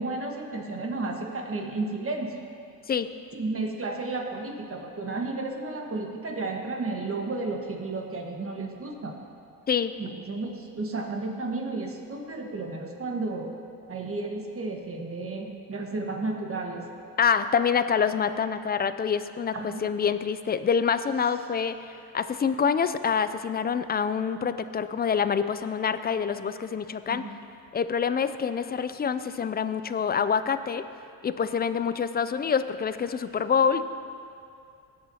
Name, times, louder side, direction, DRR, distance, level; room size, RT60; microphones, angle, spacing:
voice 1, 0.0-2.4 3.3-9.2 10.0-13.5 13.9-16.8 19.5-19.8 27.1-27.3, right 3 dB, 35° right, 2 dB, 1.5 m, -32 dB
voice 2, 17.2-27.2 27.7-30.8 31.2-33.8, left 6 dB, 25° left, 12 dB, 0.4 m, -26 dB
17.5 x 8.5 x 2.9 m, 2.6 s
cardioid pair, 85°, 40 cm